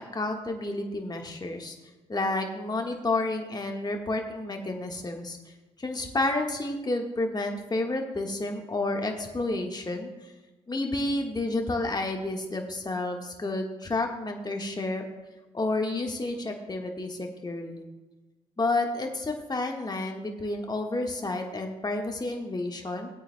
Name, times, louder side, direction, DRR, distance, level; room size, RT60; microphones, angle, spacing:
voice 1, 0.0-1.7 2.1-5.4 5.8-10.3 10.7-15.0 15.5-17.9 18.6-23.1, left 2 dB, 25° left, 2 dB, 1.4 m, -30 dB
17.5 x 8.8 x 2.2 m, 1.2 s
hypercardioid pair, 45°, 17 cm